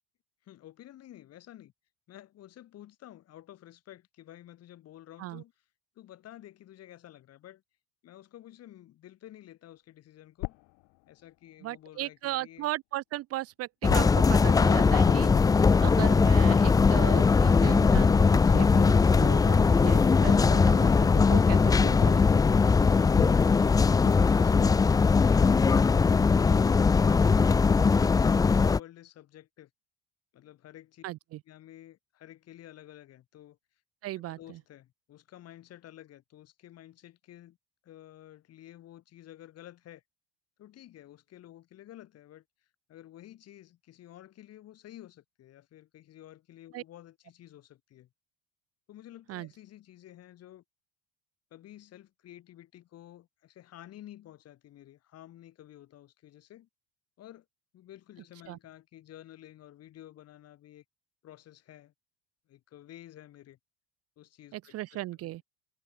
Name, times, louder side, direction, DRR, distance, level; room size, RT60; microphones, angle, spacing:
voice 1, 0.4-1.7 2.1-5.5 6.0-7.6 8.0-10.6 11.1-12.7 22.2-29.7 30.3-31.0 31.5-33.6 34.2-37.6 37.8-40.0 40.6-42.4 42.9-48.1 48.9-50.6 51.5-56.7 57.2-57.5 57.7-60.8 61.2-61.9 62.5-63.6 64.2-64.8, left 13 dB, 45° left, 5.7 m, -51 dB
sound 1, 10.4-12.3 13.9-19.9 20.2-25.7, left 26 dB, 70° left, 4.8 m, -42 dB
voice 2, 11.6-15.3 15.8-22.4 31.0-31.4 34.0-34.6 46.7-46.8 49.3-49.5 58.5-58.6 64.5-65.4, right 16 dB, 45° right, 0.7 m, -37 dB
sound 2, 13.8-28.8, left 5 dB, 10° left, 0.4 m, -21 dB
cardioid pair, 150°, 35 cm